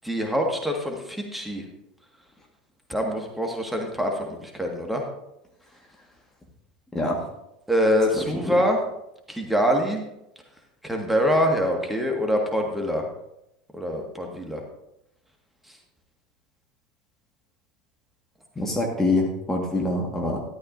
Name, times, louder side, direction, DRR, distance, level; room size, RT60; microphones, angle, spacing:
voice 1, 0.0-1.7 2.9-5.0 7.7-8.8 9.3-10.0 10.8-13.1 13.7-14.6 15.7-15.8, equal, 5° right, 1 dB, 1.8 m, -24 dB
voice 2, 6.9-7.3 8.2-8.5 18.5-20.4, left 2 dB, 10° left, 0 dB, 1.7 m, -25 dB
13.0 x 11.5 x 2.7 m, 0.85 s
figure-of-eight pair, 80°, 4 cm